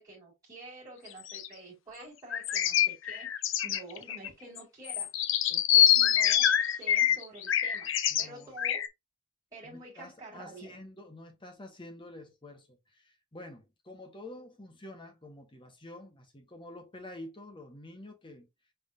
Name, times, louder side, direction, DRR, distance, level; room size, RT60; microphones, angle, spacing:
voice 1, 0.0-3.3 3.6-5.1 5.5-8.8 9.5-10.8, right 2 dB, 15° right, 2.0 m, -48 dB
sound 1, 1.1-1.5 2.3-4.3 4.6-4.7 4.9-8.3 8.6-8.9, left 10 dB, 60° left, 0.5 m, -25 dB
voice 2, 8.1-8.5 9.6-18.5, left 1 dB, 25° left, 1.1 m, -48 dB
5.6 x 3.4 x 2.5 m
head